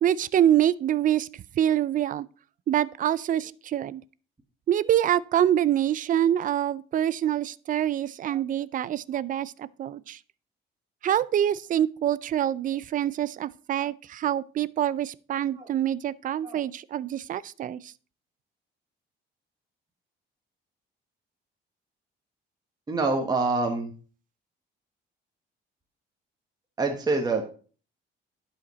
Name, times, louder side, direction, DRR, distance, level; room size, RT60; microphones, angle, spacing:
voice 1, 0.0-2.3 2.7-4.0 4.7-10.2 11.0-17.9, right 11 dB, 45° right, 0.4 m, -25 dB
voice 2, 22.9-23.9 26.8-27.4, right 3 dB, 20° right, 1.2 m, -26 dB
11.5 x 5.1 x 4.0 m
cardioid pair, 130°, 20 cm